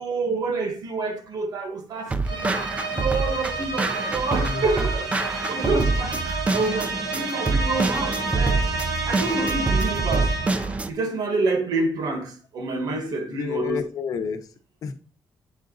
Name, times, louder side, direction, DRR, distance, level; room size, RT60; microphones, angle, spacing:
voice 1, 0.0-2.6 2.9-5.1 5.5-8.6 9.1-10.3 10.9-13.8, right 3 dB, 65° right, 1.5 m, -27 dB
sound 1, 2.1-10.9, right 3 dB, 20° right, 0.4 m, -26 dB
sound 2, 2.2-10.8, right 3 dB, 85° right, 3.3 m, -30 dB
voice 2, 4.1-4.9 13.3-14.5 14.8-14.9, left 6 dB, 55° left, 0.9 m, -31 dB
8.1 x 3.8 x 3.9 m
wide cardioid pair, 175°, 7 cm